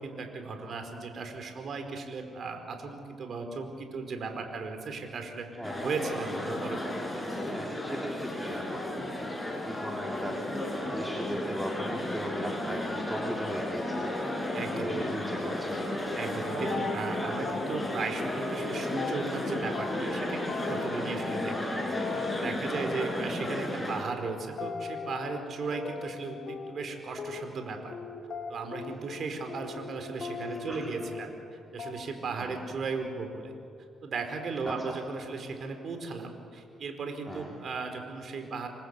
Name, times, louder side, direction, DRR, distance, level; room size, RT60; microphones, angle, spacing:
voice 1, 0.0-5.5 5.8-6.9 7.2-7.3 14.5-15.3 16.1-21.6 22.3-27.9 28.5-33.5 34.0-38.7, right 4 dB, 55° right, 6 dB, 4.9 m, -36 dB
voice 2, 5.5-5.9 7.4-15.8 22.8-22.9 28.9-29.0 30.4-30.9 32.3-32.6 34.6-34.9 37.3-37.6, equal, 5° right, -2 dB, 3.7 m, -39 dB
sound 1, 5.6-24.0, left 1 dB, 10° left, 7.0 m, -33 dB
sound 2, 16.3-17.2 17.4-19.5 19.7-31.5 31.8-32.3 32.5-32.9, left 5 dB, 55° left, 3.9 m, -40 dB
29.0 x 24.0 x 8.4 m, 2.5 s
cardioid pair, 90°, 0 cm